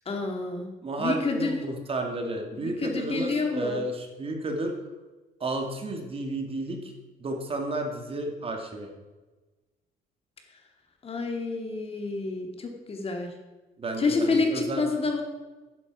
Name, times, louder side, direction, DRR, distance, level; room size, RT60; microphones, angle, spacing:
voice 1, 0.1-0.7 1.0-1.6 2.5-3.8 11.0-13.3 14.0-15.2, left 3 dB, 35° left, 3 dB, 2.4 m, -28 dB
voice 2, 0.8-4.7 5.4-6.9 7.2-8.9 13.8-14.8, right 2 dB, 35° right, 3 dB, 2.2 m, -32 dB
11.5 x 10.5 x 4.8 m, 1.2 s
cardioid pair, 110°, 17 cm